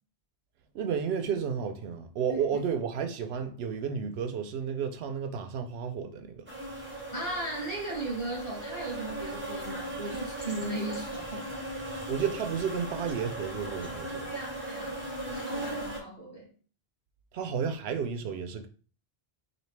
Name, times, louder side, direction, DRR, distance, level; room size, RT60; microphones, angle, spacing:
voice 1, 0.7-6.4 12.1-14.3 17.3-18.7, right 7 dB, 75° right, 0.8 m, -32 dB
voice 2, 2.3-2.6 7.1-11.5 14.3-16.5, right 2 dB, 35° left, 2.0 m, -37 dB
sound 1, 6.5-16.0, right 1 dB, 15° right, 0.6 m, -38 dB
4.1 x 2.7 x 3.2 m
omnidirectional pair, 1.1 m